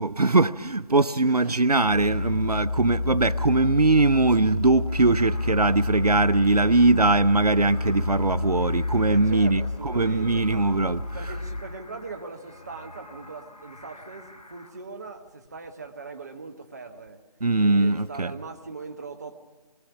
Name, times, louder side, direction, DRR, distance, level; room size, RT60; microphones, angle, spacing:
voice 1, 0.0-11.0 17.4-18.3, right 3 dB, 80° right, 0.7 m, -21 dB
voice 2, 1.2-1.8 9.1-10.7 11.1-17.2 17.6-19.4, right 4 dB, 25° right, 1.2 m, -40 dB
Sci-Fi Engine Car Drone Helicopter Spaceship, 1.8-11.6, left 3 dB, 55° left, 2.2 m, -29 dB
sound 1, 4.9-14.7, left 1 dB, 80° left, 4.1 m, -48 dB
23.0 x 19.5 x 6.0 m
figure-of-eight pair, 160°, 20 cm